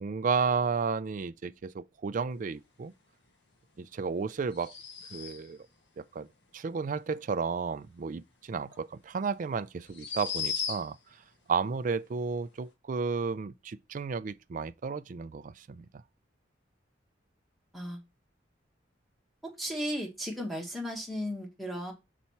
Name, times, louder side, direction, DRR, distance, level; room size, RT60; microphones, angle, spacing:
voice 1, 0.0-2.9 3.8-4.7 5.1-5.6 6.0-6.3 6.5-11.0 11.5-15.9, right 5 dB, 45° right, 0.3 m, -32 dB
sound 1, 4.5-5.6 8.7-8.8 9.9-11.1, left 7 dB, 65° left, 1.5 m, -36 dB
voice 2, 19.4-21.9, equal, ahead, 1.5 m, -35 dB
5.7 x 4.1 x 4.4 m
head